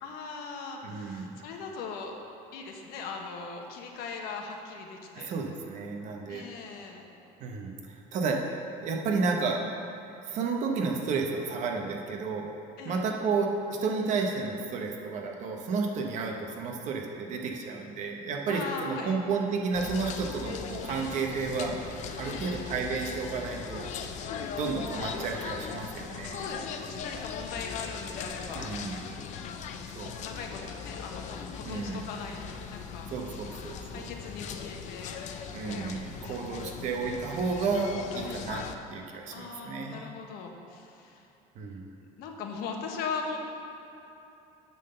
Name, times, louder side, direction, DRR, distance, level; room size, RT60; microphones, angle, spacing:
voice 1, 0.0-2.1 2.5-5.3 6.3-7.1 12.8-13.0 18.5-19.2 22.2-22.7 26.2-28.7 30.2-33.1 33.9-36.6 36.8-37.0 38.2-38.4 39.3-41.3 42.2-43.4, left 5 dB, 70° left, 2 dB, 1.0 m, -40 dB
voice 2, 0.8-1.4 5.1-6.4 7.4-9.6 10.2-12.5 12.8-23.9 24.6-26.4 28.5-29.0 29.9-30.3 31.6-32.0 33.1-34.1 35.5-38.6 38.9-40.1 41.5-41.9, right 4 dB, 45° right, 2 dB, 0.9 m, -32 dB
sound 1, 19.7-38.7, left 6 dB, 45° left, 0.5 m, -39 dB
9.5 x 3.8 x 6.6 m, 3.0 s
cardioid pair, 160°, 17 cm